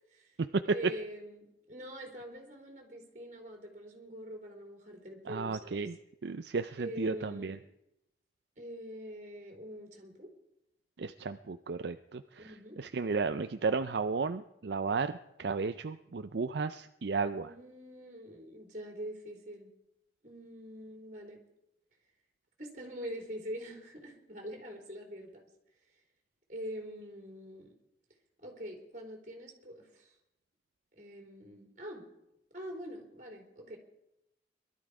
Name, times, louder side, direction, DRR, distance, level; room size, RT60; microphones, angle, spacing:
voice 1, 0.7-5.9 6.8-7.6 8.6-10.3 12.4-12.8 17.4-19.7 20.2-21.4 22.6-25.5 26.5-27.7 28.4-30.2 31.0-32.0 32.5-33.8, equal, 45° right, 2 dB, 3.6 m, -44 dB
voice 2, 5.3-5.9 6.2-7.6 11.0-17.5, right 4 dB, 70° right, 9 dB, 0.5 m, -34 dB
21.5 x 12.5 x 4.9 m, 0.85 s
head